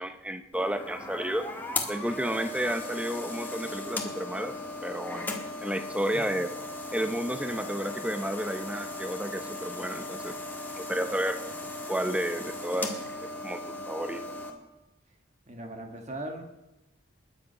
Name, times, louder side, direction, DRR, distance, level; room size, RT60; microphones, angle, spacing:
voice 1, 0.0-1.5 1.9-4.5 4.8-5.3 5.6-6.5 6.9-10.4 10.8-11.4 11.9-14.2, equal, 5° right, 8 dB, 0.8 m, -31 dB
sound 1, 0.5-14.5, left 2 dB, 10° left, 1.6 m, -37 dB
voice 2, 15.5-16.6, right 1 dB, 35° right, 4 dB, 1.5 m, -39 dB
20.5 x 9.8 x 5.6 m, 1.0 s
head